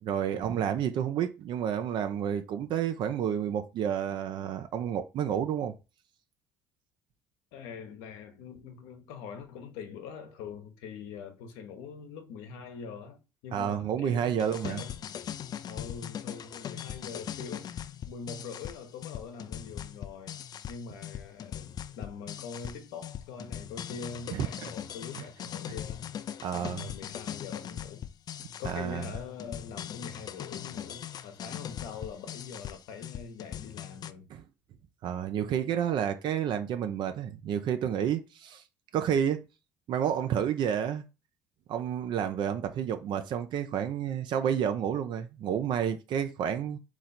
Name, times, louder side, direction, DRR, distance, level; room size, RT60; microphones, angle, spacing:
voice 1, 0.0-5.7 13.5-14.8 24.3-24.5 25.1-25.3 26.4-26.9 28.6-29.1 34.3-34.4 35.0-38.6 38.9-39.4 39.9-41.0 41.7-46.8, right 9 dB, 60° right, 0.6 m, -30 dB
voice 2, 7.5-15.0 15.7-26.0 26.5-28.0 28.6-34.3, left 6 dB, 80° left, 1.0 m, -43 dB
sound 1, 14.4-34.1, left 9 dB, 50° left, 0.4 m, -40 dB
3.8 x 3.1 x 4.2 m
supercardioid pair, 70°, 9 cm